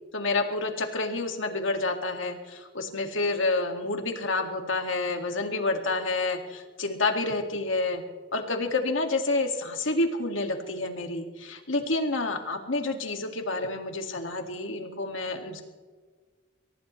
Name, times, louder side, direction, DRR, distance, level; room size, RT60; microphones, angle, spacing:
voice 1, 0.1-8.0 8.3-15.6, left 2 dB, 70° left, 4 dB, 2.1 m, -29 dB
23.5 x 18.0 x 3.2 m, 1.4 s
head